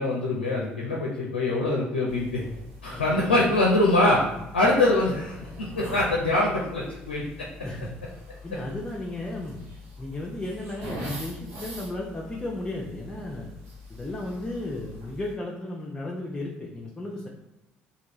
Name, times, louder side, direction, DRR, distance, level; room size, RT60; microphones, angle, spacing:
voice 1, 0.0-2.4 2.8-4.2 4.5-7.2, left 2 dB, 85° left, -3 dB, 0.5 m, -23 dB
sound 1, 2.1-15.3, left 1 dB, 55° right, 1.0 m, -43 dB
voice 2, 2.9-3.2 7.6-7.9 8.4-9.6 10.0-13.5 13.9-17.3, left 1 dB, 15° left, -3 dB, 0.6 m, -34 dB
3.5 x 2.3 x 2.9 m, 0.93 s
figure-of-eight pair, 50°, 5 cm